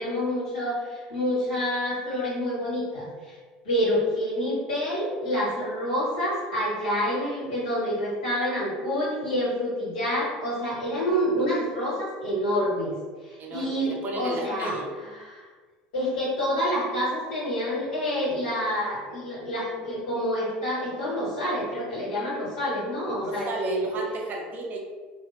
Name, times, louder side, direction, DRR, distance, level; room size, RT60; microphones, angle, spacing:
voice 1, 0.0-3.3 3.6-12.9 13.2-15.5 15.9-23.9, equal, 80° left, -8 dB, 1.4 m, -28 dB
voice 2, 13.4-14.9 23.2-24.8, right 2 dB, 45° right, 1 dB, 0.5 m, -33 dB
2.5 x 2.1 x 2.4 m, 1.4 s
hypercardioid pair, 85°, 4 cm